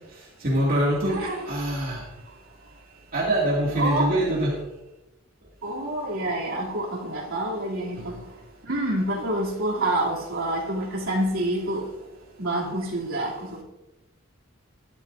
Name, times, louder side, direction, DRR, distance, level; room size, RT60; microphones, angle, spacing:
voice 1, 0.1-2.0 3.1-4.5 8.0-8.2, right 1 dB, 45° right, 2.5 m, -25 dB
voice 2, 1.1-1.5 3.8-4.1 5.6-8.1 8.7-11.8 12.4-13.6, right 1 dB, 80° right, 3.1 m, -27 dB
14.0 x 11.5 x 2.7 m
head